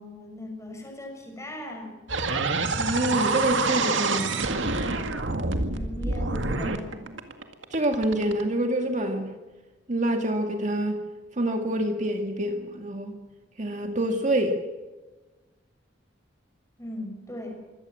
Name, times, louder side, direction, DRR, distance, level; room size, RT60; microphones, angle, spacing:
voice 1, 0.0-2.1 5.5-6.9 16.8-17.6, left 1 dB, 15° left, 2 dB, 6.3 m, -38 dB
sound 1, 2.1-8.4, right 3 dB, 85° right, 2.0 m, -27 dB
voice 2, 2.8-4.6 7.7-9.3 9.9-11.0 11.4-13.2 13.6-14.6, right 1 dB, 40° right, 4 dB, 1.9 m, -26 dB
24.5 x 17.0 x 7.6 m, 1.2 s
head